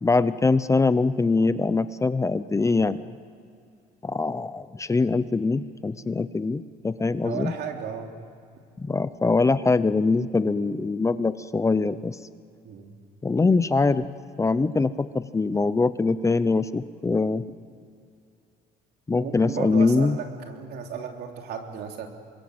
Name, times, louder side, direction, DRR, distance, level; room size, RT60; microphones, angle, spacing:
voice 1, 0.0-3.0 4.0-7.5 8.8-12.2 13.2-14.0 14.4-17.4 19.1-20.2, left 3 dB, 15° left, 14 dB, 0.7 m, -23 dB
voice 2, 7.2-8.2 12.6-12.9 19.1-22.1, right 7 dB, 70° right, 3 dB, 3.3 m, -34 dB
26.0 x 22.0 x 7.9 m, 2.4 s
cardioid pair, 110°, 17 cm